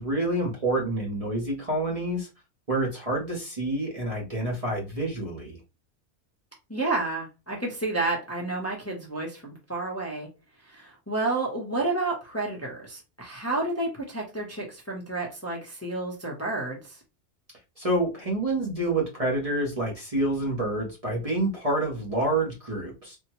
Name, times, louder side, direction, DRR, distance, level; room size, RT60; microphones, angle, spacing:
voice 1, 0.0-2.3 2.7-5.6 17.8-23.2, right 1 dB, 35° right, -2 dB, 0.8 m, -28 dB
voice 2, 6.7-10.3 10.6-17.0, right 2 dB, 15° left, -3 dB, 0.7 m, -30 dB
3.5 x 2.1 x 2.9 m, 0.29 s
omnidirectional pair, 1.2 m